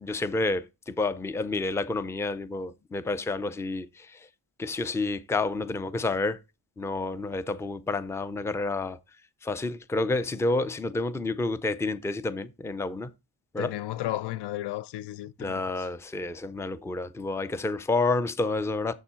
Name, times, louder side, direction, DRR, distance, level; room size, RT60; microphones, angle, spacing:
voice 1, 0.0-4.3 4.6-6.4 6.8-9.0 9.4-13.1 13.5-13.8 15.4-18.9, left 3 dB, 5° left, 0.4 m, -29 dB
voice 2, 13.6-15.9, left 15 dB, 80° left, 0.6 m, -34 dB
7.0 x 7.0 x 4.3 m
wide cardioid pair, 150°, 40 cm